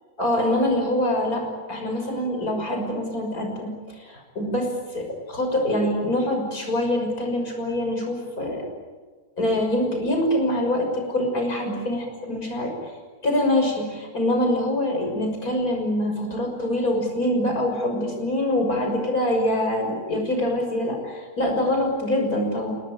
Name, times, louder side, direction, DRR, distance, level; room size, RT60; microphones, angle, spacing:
voice 1, 0.2-1.4 1.7-8.7 9.4-12.9 13.2-22.7, left 1 dB, 70° left, 2 dB, 6.7 m, -24 dB
29.5 x 19.0 x 9.2 m, 1.4 s
omnidirectional pair, 1.6 m